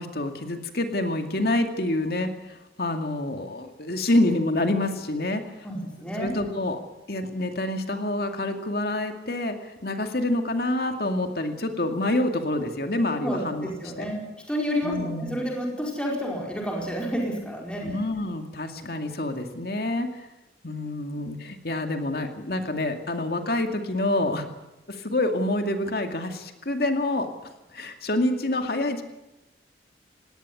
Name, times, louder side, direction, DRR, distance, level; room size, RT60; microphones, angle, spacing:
voice 1, 0.0-5.7 6.2-6.8 7.1-13.7 14.0-14.1 14.8-15.4 17.8-20.3 20.6-24.5 24.9-27.3 27.7-29.0, left 1 dB, 60° left, 5 dB, 2.3 m, -27 dB
voice 2, 5.6-6.3 13.2-18.0, equal, 5° left, -1 dB, 4.7 m, -30 dB
20.0 x 18.0 x 9.8 m, 0.96 s
head